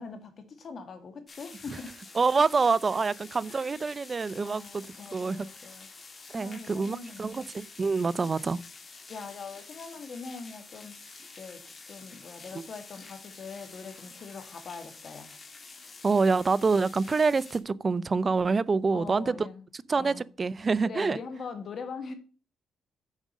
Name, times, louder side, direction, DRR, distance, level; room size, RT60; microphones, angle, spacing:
voice 1, 0.0-2.0 3.5-3.8 4.4-5.9 6.3-7.5 8.2-8.5 9.1-11.0 11.4-15.3 18.9-19.6 19.9-20.3 20.8-22.1, left 5 dB, 50° left, 1.9 m, -42 dB
sound 1, 1.3-17.6, left 4 dB, 35° left, 1.8 m, -48 dB
voice 2, 2.2-4.8 5.1-5.5 6.3-8.6 16.0-19.5 19.9-21.2, right 4 dB, 35° right, 0.4 m, -26 dB
7.3 x 5.2 x 7.3 m
cardioid pair, 90°, 0 cm